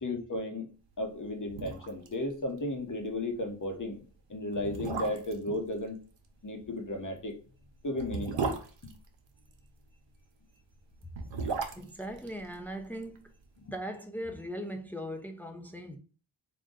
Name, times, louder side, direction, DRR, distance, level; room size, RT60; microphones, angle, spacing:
voice 1, 0.0-0.7 1.0-4.0 4.3-6.0 6.4-7.3 7.8-8.5 8.8-8.9 11.7-11.9, left 1 dB, 45° left, 0.9 m, -34 dB
sound 1, 1.1-1.2 1.5-2.1 2.4-2.5 2.9-3.1 3.8-3.9 4.5-5.5 7.0-9.7 10.9-13.2 13.4-13.5, right 5 dB, 75° right, 0.7 m, -36 dB
voice 2, 11.7-13.3 13.7-16.0, equal, 5° left, 0.6 m, -39 dB
3.8 x 2.2 x 3.8 m
wide cardioid pair, 60°, 45 cm